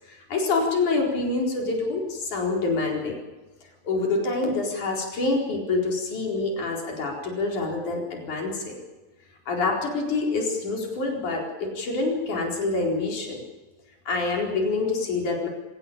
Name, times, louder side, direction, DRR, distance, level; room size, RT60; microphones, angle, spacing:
voice 1, 0.1-3.2 3.8-8.8 9.5-13.4 14.1-15.5, left 3 dB, 90° left, 0 dB, 5.9 m, -26 dB
25.5 x 17.5 x 8.6 m, 1.2 s
omnidirectional pair, 3.4 m